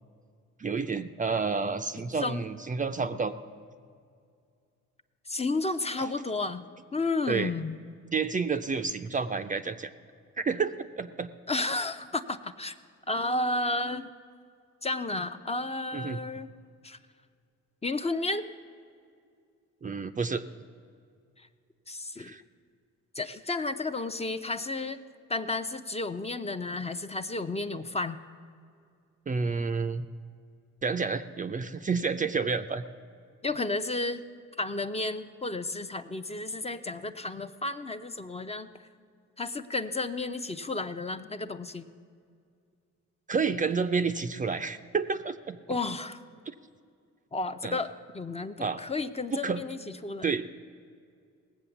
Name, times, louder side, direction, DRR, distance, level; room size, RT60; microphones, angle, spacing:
voice 1, 0.6-3.3 6.0-6.1 7.3-7.5 8.1-9.9 10.4-11.3 15.9-16.2 19.8-20.5 22.2-22.4 29.3-30.0 30.8-32.8 43.3-45.6 46.5-46.6 47.6-47.8 48.6-48.8 49.3-49.6 50.2-50.5, right 5 dB, 25° right, 9 dB, 0.5 m, -30 dB
voice 2, 5.3-6.7 6.9-7.8 11.5-12.7 13.1-14.1 14.8-16.5 16.8-17.0 17.8-18.4 21.9-22.3 23.1-25.0 25.3-28.2 33.4-34.2 34.6-38.7 39.4-41.9 45.7-46.2 47.3-50.3, left 2 dB, 20° left, 8 dB, 0.6 m, -32 dB
18.0 x 7.7 x 7.1 m, 2.3 s
cardioid pair, 90°, 30 cm